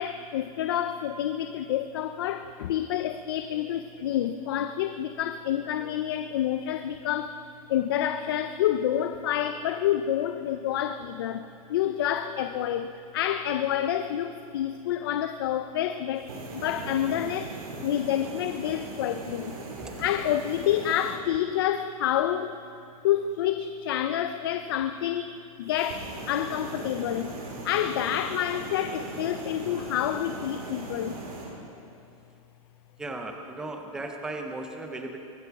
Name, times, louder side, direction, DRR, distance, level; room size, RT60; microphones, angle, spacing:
voice 1, 0.0-7.4 7.7-17.5 17.8-19.6 20.0-22.6 23.0-25.3 25.6-31.2, left 11 dB, 40° left, 9 dB, 0.5 m, -28 dB
sound 1, 16.2-21.2 25.7-31.5, right 2 dB, 85° right, 4.3 m, -39 dB
voice 2, 33.0-35.2, right 2 dB, 5° right, 4 dB, 0.6 m, -36 dB
23.0 x 13.0 x 4.7 m, 2.5 s
supercardioid pair, 175°, 19 cm